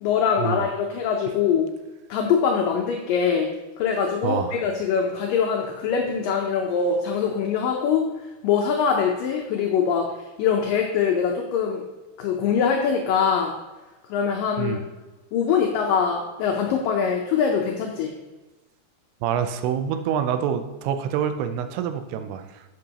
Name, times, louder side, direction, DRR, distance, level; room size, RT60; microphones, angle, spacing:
voice 1, 0.0-1.7 2.1-3.5 3.8-8.1 8.4-10.1 10.4-11.8 12.2-13.5 14.1-14.8 15.3-18.1, left 6 dB, 75° left, 1 dB, 2.1 m, -23 dB
voice 2, 4.2-4.6 14.6-14.8 19.2-22.6, right 8 dB, 85° right, 8 dB, 2.6 m, -26 dB
11.5 x 7.6 x 2.9 m, 1.1 s
omnidirectional pair, 4.7 m